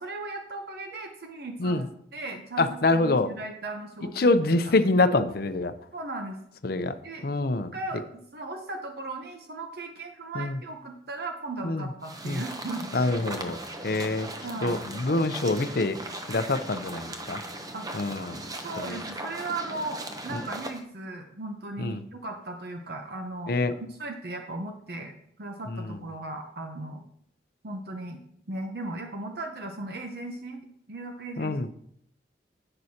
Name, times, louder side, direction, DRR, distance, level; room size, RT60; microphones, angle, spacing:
voice 1, 0.0-1.9 2.1-4.3 4.6-4.7 5.9-6.4 7.0-7.3 7.7-13.1 14.4-14.8 17.7-17.9 18.6-25.1 25.4-27.0 27.6-28.2 28.5-31.7, right 2 dB, 55° right, 4 dB, 0.8 m, -37 dB
voice 2, 2.6-3.3 4.2-5.7 6.6-6.9 7.2-7.7 10.3-10.6 11.6-11.9 12.2-12.4 12.9-13.6 13.8-14.3 14.6-16.0 16.3-17.4 17.9-18.4 18.8-19.0 20.3-20.4 21.8-22.0 23.5-23.7 25.7-26.0 31.4-31.7, left 2 dB, 55° left, 10 dB, 0.6 m, -25 dB
sound 1, 12.0-20.8, right 1 dB, 20° right, 0.7 m, -38 dB
10.5 x 7.7 x 2.8 m, 0.70 s
head